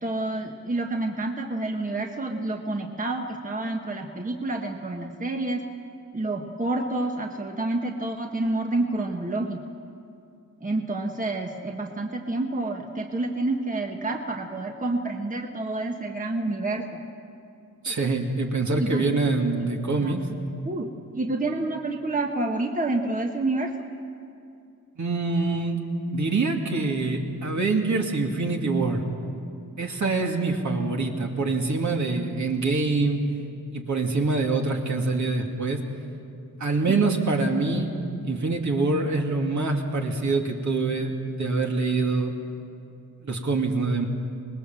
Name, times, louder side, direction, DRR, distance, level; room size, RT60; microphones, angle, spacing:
voice 1, 0.0-5.6 6.1-9.6 10.6-17.0 18.8-19.3 20.0-20.3 20.6-23.7 36.9-37.0, right 2 dB, 25° right, 2 dB, 1.3 m, -28 dB
voice 2, 17.8-20.3 25.0-25.8 26.1-29.0 29.8-33.2 33.7-35.8 36.6-37.9 38.2-42.3 43.2-44.1, right 3 dB, 60° right, 1 dB, 2.6 m, -25 dB
26.0 x 20.0 x 7.6 m, 2.5 s
wide cardioid pair, 115°, 33 cm